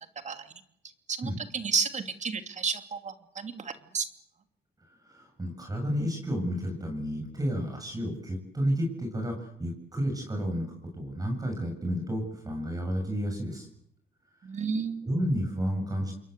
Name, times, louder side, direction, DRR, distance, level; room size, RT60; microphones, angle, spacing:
voice 1, 1.1-4.1 14.4-15.1, right 5 dB, 45° right, 8 dB, 2.8 m, -32 dB
voice 2, 5.1-10.7 10.9-13.7 15.0-16.1, equal, 20° right, 2 dB, 7.7 m, -31 dB
28.5 x 22.5 x 8.1 m, 0.73 s
cardioid pair, 95°, 17 cm